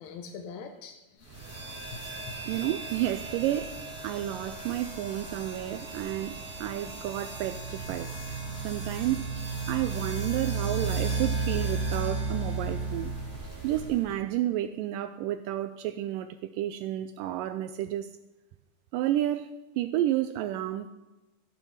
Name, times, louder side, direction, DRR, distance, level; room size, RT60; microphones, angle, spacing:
voice 1, 0.0-2.0 2.3-2.4, left 6 dB, 75° left, 7 dB, 1.7 m, -44 dB
sound 1, 1.3-14.1, right 3 dB, 5° right, 4.5 m, -34 dB
voice 2, 2.5-3.8 4.0-8.1 8.6-9.3 9.7-13.1 13.6-18.1 18.9-20.9, right 13 dB, 85° right, 11 dB, 1.9 m, -31 dB
14.5 x 9.1 x 5.6 m, 1.1 s
omnidirectional pair, 4.4 m